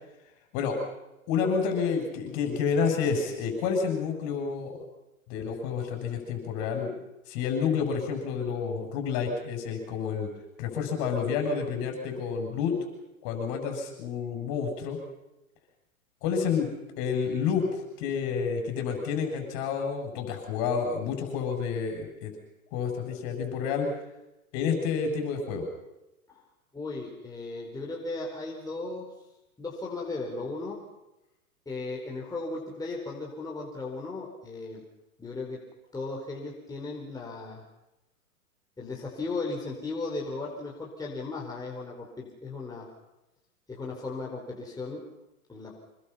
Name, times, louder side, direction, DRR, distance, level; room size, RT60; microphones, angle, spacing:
voice 1, 1.3-4.8 5.3-6.9 7.3-10.3 10.6-12.7 13.2-15.0 16.2-16.7 17.0-17.6 18.0-22.3 22.7-23.9 24.5-25.7, left 6 dB, 45° left, 4 dB, 7.5 m, -29 dB
voice 2, 26.7-29.1 29.6-30.8 31.7-34.8 35.2-35.6 35.9-37.6 38.8-42.9 43.7-45.0 45.5-45.8, left 3 dB, 10° left, -2 dB, 4.6 m, -36 dB
26.5 x 22.5 x 5.8 m, 0.93 s
hypercardioid pair, 115°, 43 cm